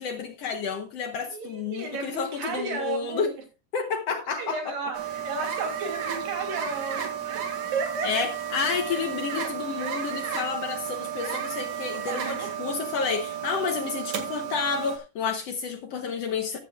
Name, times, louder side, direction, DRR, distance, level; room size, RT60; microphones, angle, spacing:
voice 1, 0.0-3.3 3.7-4.7 8.0-16.6, left 6 dB, 65° left, 1.7 m, -30 dB
voice 2, 1.3-3.3 4.4-8.3 8.9-9.0 12.1-12.5, right 4 dB, 85° right, 4.4 m, -33 dB
sound 1, 4.9-15.0, right 9 dB, 60° right, 3.1 m, -33 dB
14.5 x 11.0 x 2.3 m
omnidirectional pair, 3.8 m